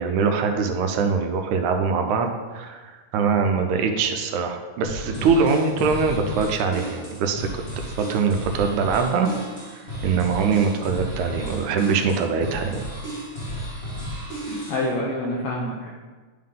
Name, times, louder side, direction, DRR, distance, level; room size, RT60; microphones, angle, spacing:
voice 1, 0.0-9.3 9.8-12.8, right 5 dB, 80° right, 4 dB, 1.9 m, -23 dB
sound 1, 4.8-14.9, equal, 45° left, 0.8 m, -33 dB
voice 2, 14.5-15.9, left 1 dB, 75° left, -3 dB, 1.3 m, -27 dB
10.0 x 3.7 x 3.7 m, 1.4 s
omnidirectional pair, 3.5 m